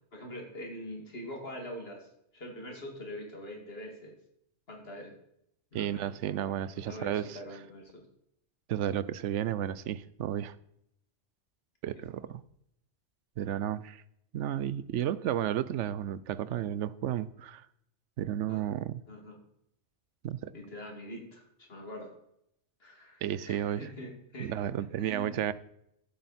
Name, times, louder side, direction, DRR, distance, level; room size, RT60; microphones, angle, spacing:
voice 1, 0.1-4.2 4.7-5.2 5.7-8.1 11.9-12.0 18.5-18.6 19.1-19.4 20.5-22.2 22.8-24.6 25.0-25.5, equal, 55° left, 2.8 m, -44 dB
voice 2, 5.7-7.4 8.7-10.5 11.8-12.4 13.4-14.0 14.3-17.7 18.2-19.0 20.2-20.5 23.2-23.9 24.4-25.5, right 11 dB, 90° right, 0.9 m, -32 dB
14.5 x 7.8 x 4.3 m
omnidirectional pair, 1.2 m